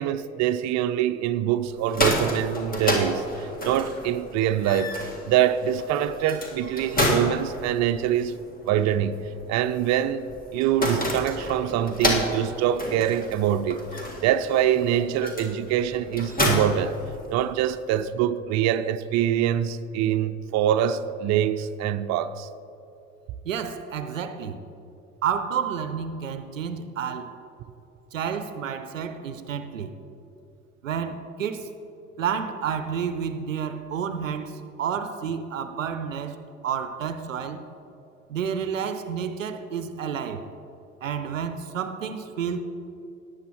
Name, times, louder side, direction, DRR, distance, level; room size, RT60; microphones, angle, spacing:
voice 1, 0.0-5.0 5.3-8.3 8.7-10.2 10.5-13.8 14.2-17.0 17.3-22.5, right 10 dB, 45° right, 0.6 m, -24 dB
sound 1, 1.7-17.6, left 1 dB, 25° left, 1.9 m, -30 dB
voice 2, 23.4-24.6 25.2-27.3 28.1-30.0 30.8-31.7 32.2-36.4 36.6-37.6 38.3-40.5 41.0-42.6, right 7 dB, 85° right, 0.6 m, -30 dB
18.0 x 8.4 x 3.1 m
figure-of-eight pair, 60°, 38 cm